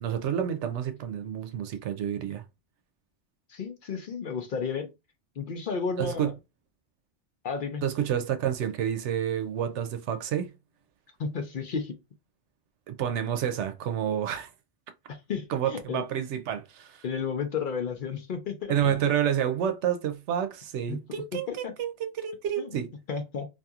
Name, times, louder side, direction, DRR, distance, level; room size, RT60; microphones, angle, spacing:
voice 1, 0.0-2.4 6.0-6.3 7.8-10.5 12.9-14.5 15.5-17.0 18.7-22.9, right 9 dB, 90° right, 0.9 m, -29 dB
voice 2, 3.5-4.9 5.4-6.3 7.4-7.8 11.2-11.9 15.1-16.0 17.0-18.9 20.9-21.0 21.6-21.7 22.6-22.7 23.1-23.5, left 5 dB, 55° left, 0.6 m, -32 dB
2.7 x 2.6 x 2.3 m
omnidirectional pair, 1.2 m